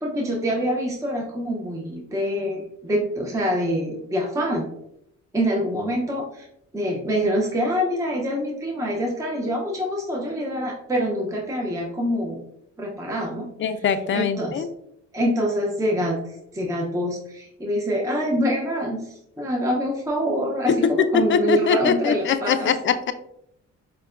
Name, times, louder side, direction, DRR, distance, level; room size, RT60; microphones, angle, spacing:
voice 1, 0.0-4.7 5.3-6.5 6.7-12.4 12.8-13.5 14.1-14.6 15.1-22.7, equal, 10° right, -2 dB, 0.6 m, -25 dB
voice 2, 13.6-14.7 20.7-23.1, left 6 dB, 40° left, 10 dB, 0.4 m, -22 dB
5.3 x 2.1 x 2.4 m, 0.78 s
cardioid pair, 90°, 30 cm